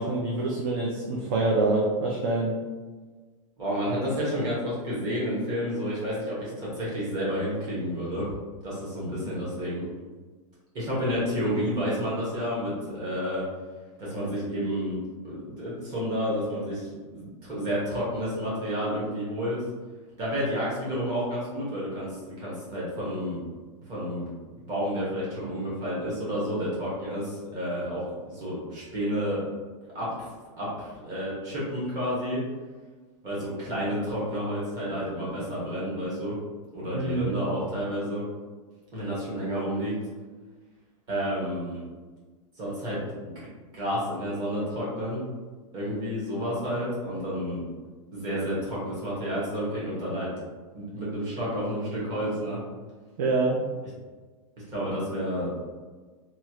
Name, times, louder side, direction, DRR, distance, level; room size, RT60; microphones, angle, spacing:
voice 1, 0.0-2.5 36.9-37.4 53.2-53.6, right 2 dB, 40° right, -3 dB, 0.4 m, -26 dB
voice 2, 3.6-8.3 8.6-9.9 10.7-13.5 14.0-19.6 20.2-23.4 23.9-24.3 24.7-29.4 29.9-30.1 30.6-32.4 33.2-36.4 36.7-38.2 38.9-39.9 41.1-41.8 42.6-43.0 43.3-43.5 43.7-45.2 45.7-47.6 48.1-50.3 50.7-52.6 54.7-55.5, equal, 25° right, -7 dB, 1.1 m, -30 dB
3.1 x 2.4 x 2.8 m, 1.4 s
supercardioid pair, 175°, 17 cm